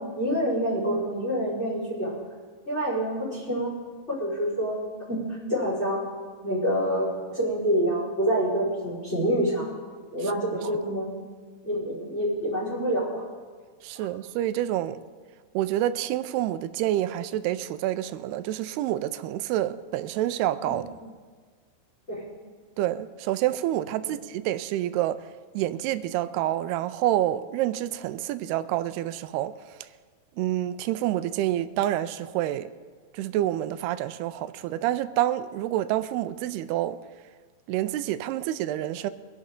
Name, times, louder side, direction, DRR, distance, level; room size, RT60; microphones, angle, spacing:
voice 1, 0.1-2.1 2.7-3.7 4.1-4.8 5.1-6.1 6.4-9.7 10.1-11.1 11.6-13.2 20.6-20.7 22.1-22.2 24.0-24.2, equal, 15° left, 4.7 m, -27 dB
voice 2, 13.8-15.0 15.5-20.9 22.8-25.2 25.5-29.6 30.4-32.7 33.1-37.0 37.7-39.1, right 13 dB, 80° right, 2.5 m, -28 dB
24.0 x 11.0 x 3.8 m
omnidirectional pair, 4.8 m